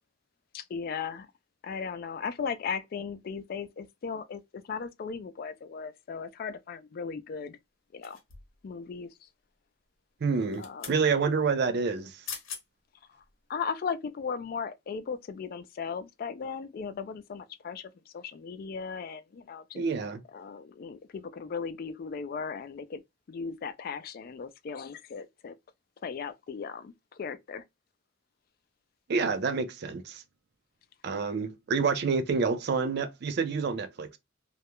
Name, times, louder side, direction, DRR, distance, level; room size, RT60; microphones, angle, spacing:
voice 1, 0.5-1.3 1.6-7.6 7.9-8.2 8.6-9.1 10.6-10.9 13.5-19.8 20.3-23.0 23.3-25.5 26.0-27.6, left 6 dB, 50° left, 0.3 m, -37 dB
sound 1, 8.0-8.6 10.3-11.0 12.0-12.1 12.3-12.6 13.2-13.3, left 7 dB, 90° left, 0.8 m, -42 dB
voice 2, 10.2-12.2 19.8-20.2 29.1-30.2 31.0-34.2, right 5 dB, 55° right, 0.4 m, -28 dB
2.3 x 2.1 x 2.9 m
head